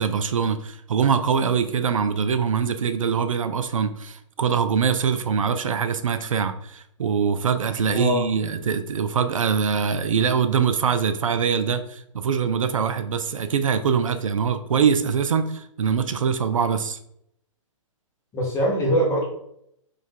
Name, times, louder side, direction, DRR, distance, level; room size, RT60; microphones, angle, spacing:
voice 1, 0.0-17.0, right 6 dB, 80° right, 10 dB, 0.4 m, -23 dB
voice 2, 7.9-8.3 18.3-19.3, equal, 15° left, -3 dB, 1.3 m, -22 dB
3.4 x 3.2 x 3.6 m, 0.74 s
hypercardioid pair, 125°, 17 cm